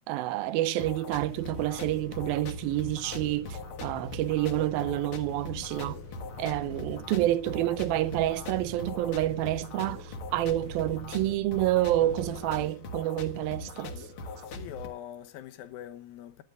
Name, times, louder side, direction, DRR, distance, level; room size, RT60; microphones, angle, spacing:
voice 1, 0.1-6.0 6.4-14.1, right 15 dB, 85° right, 2.5 m, -28 dB
sound 1, 0.8-14.9, left 2 dB, 55° left, 1.6 m, -41 dB
sound 2, 1.5-12.6, left 3 dB, 15° left, 1.5 m, -46 dB
voice 2, 14.4-16.4, left 11 dB, 80° left, 2.8 m, -43 dB
20.0 x 8.0 x 3.6 m
omnidirectional pair, 4.1 m